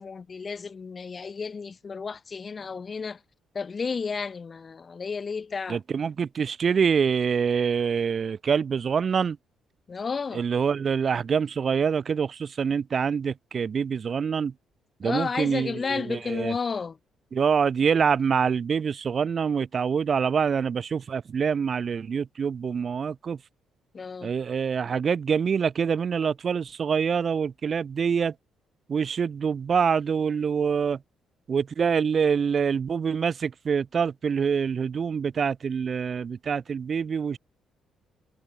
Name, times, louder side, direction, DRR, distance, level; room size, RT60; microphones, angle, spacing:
voice 1, 0.0-3.2 3.5-5.8 9.9-10.4 15.0-17.0 23.9-24.3, left 5 dB, 35° left, 0.7 m, -32 dB
voice 2, 5.7-9.4 10.3-14.5 15.0-16.6 17.3-23.4 24.2-28.3 28.9-31.0 31.5-37.4, right 6 dB, 45° right, 1.0 m, -25 dB
cardioid pair, 90°, 0 cm